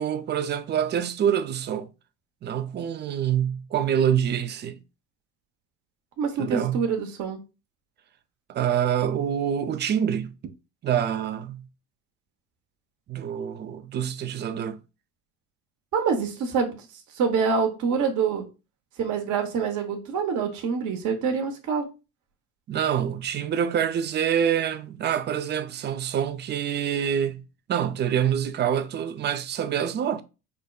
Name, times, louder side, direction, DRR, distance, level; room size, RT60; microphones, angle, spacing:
voice 1, 0.0-1.9 2.4-4.8 6.4-6.8 8.5-10.5 10.8-11.6 13.1-14.8 22.7-27.4 27.7-30.2, right 9 dB, 30° right, 0.4 m, -26 dB
voice 2, 6.2-7.4 15.9-16.8 17.1-18.4 19.0-21.9, right 5 dB, 55° right, 1.0 m, -26 dB
5.1 x 2.2 x 2.3 m
supercardioid pair, 85°, 37 cm